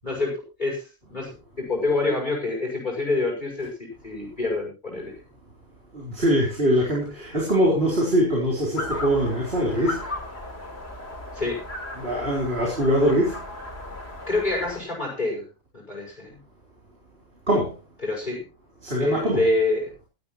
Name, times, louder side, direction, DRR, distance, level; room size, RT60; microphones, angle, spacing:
voice 1, 0.0-5.1 11.3-11.6 14.3-16.4 18.0-18.5 19.0-19.9, left 2 dB, 35° left, 6.4 m, -27 dB
voice 2, 5.9-10.1 12.0-13.4 17.5-17.8 18.8-19.4, equal, 50° right, 4.3 m, -22 dB
sound 1, 8.8-14.8, left 2 dB, 50° left, 4.3 m, -36 dB
17.5 x 13.5 x 3.1 m
omnidirectional pair, 1.3 m